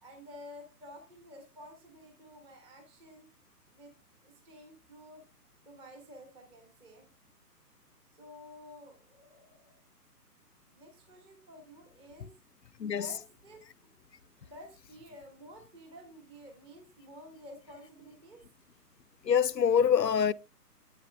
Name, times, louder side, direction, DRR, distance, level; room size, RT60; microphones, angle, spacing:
voice 1, 0.0-3.3 3.7-3.9 4.2-5.2 5.6-7.1 8.1-9.8 10.7-12.3 13.0-13.6 14.5-18.5, left 1 dB, 10° right, 1.4 m, -51 dB
voice 2, 19.2-20.3, left 7 dB, 85° left, 0.7 m, -25 dB
9.1 x 8.4 x 3.5 m
figure-of-eight pair, 140°, 48 cm